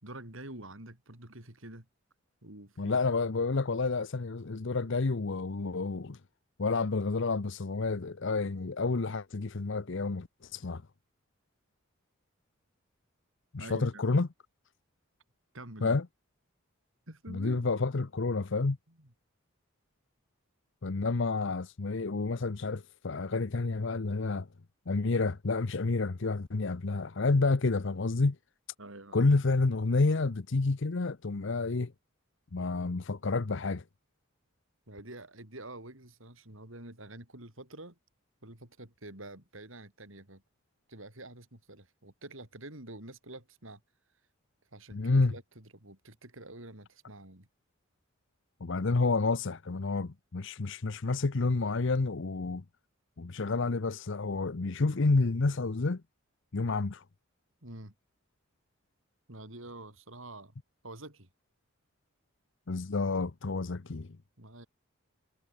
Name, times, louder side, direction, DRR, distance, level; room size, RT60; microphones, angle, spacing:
voice 1, 0.0-1.9 2.4-3.0 13.6-14.2 15.5-16.0 17.1-17.6 19.0-19.1 28.8-29.3 34.9-38.0 38.4-40.4 40.9-43.8 44.7-47.5 57.6-57.9 59.3-60.5 60.8-61.3 64.4-64.7, right 1 dB, 65° right, 5.4 m, -47 dB
voice 2, 2.8-6.2 6.6-10.8 13.5-14.3 15.8-16.1 17.3-18.8 20.8-24.5 24.9-28.4 29.1-31.9 32.5-33.8 44.9-45.3 48.6-52.6 53.2-56.0 56.5-57.0 62.7-64.1, left 3 dB, 60° left, 0.8 m, -29 dB
head